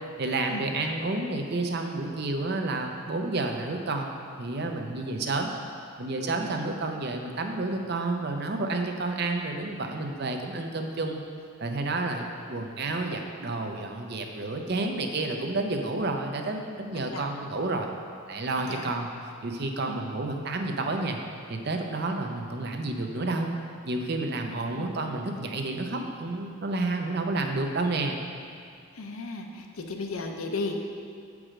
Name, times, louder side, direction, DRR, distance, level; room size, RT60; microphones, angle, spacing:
voice 1, 0.2-4.1 4.4-5.5 6.0-11.2 11.6-17.9 18.3-19.1 19.4-21.2 21.5-23.5 23.8-28.2, right 2 dB, 50° right, 4 dB, 0.6 m, -30 dB
voice 2, 24.5-24.9 29.0-30.8, left 3 dB, 75° left, 3 dB, 0.7 m, -35 dB
7.5 x 4.8 x 5.0 m, 2.4 s
head